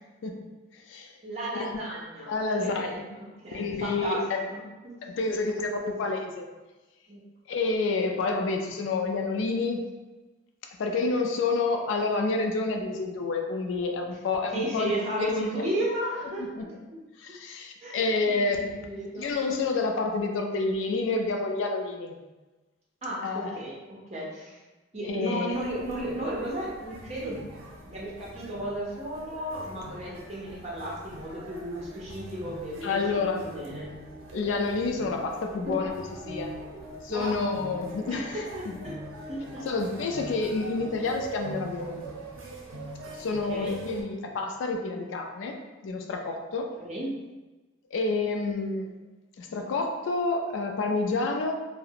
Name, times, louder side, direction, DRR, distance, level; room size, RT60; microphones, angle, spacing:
voice 1, 1.2-4.9 7.1-7.2 14.5-16.5 17.8-19.3 23.0-24.6 24.9-27.4 27.9-33.0 33.4-33.9 35.7-35.8 37.1-37.4 38.1-38.2 38.5-38.9 39.3-39.7 43.5-43.7 46.8-47.1, right 1 dB, 35° right, -5 dB, 0.6 m, -34 dB
voice 2, 2.3-3.0 3.5-4.2 5.0-6.5 7.5-9.9 10.8-15.6 16.4-16.7 17.2-18.7 19.2-22.2 23.2-23.6 25.0-25.6 32.8-33.5 34.3-35.9 36.3-36.5 37.0-38.4 39.6-42.0 43.1-45.6 45.8-46.7 47.9-48.9 49.4-51.5, left 3 dB, 75° left, 3 dB, 0.3 m, -29 dB
sound 1, 25.5-44.0, right 2 dB, 90° right, 0.5 m, -43 dB
2.4 x 2.0 x 2.8 m, 1.2 s
head